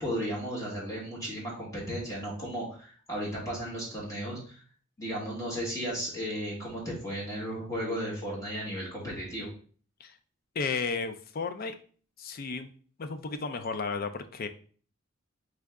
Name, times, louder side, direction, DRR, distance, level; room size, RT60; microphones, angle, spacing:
voice 1, 0.0-4.6 5.0-9.5, equal, 15° left, -5 dB, 1.7 m, -35 dB
voice 2, 10.6-11.7 12.2-12.7 13.0-14.5, left 4 dB, 45° left, 8 dB, 0.4 m, -33 dB
3.8 x 3.3 x 3.6 m, 0.43 s
head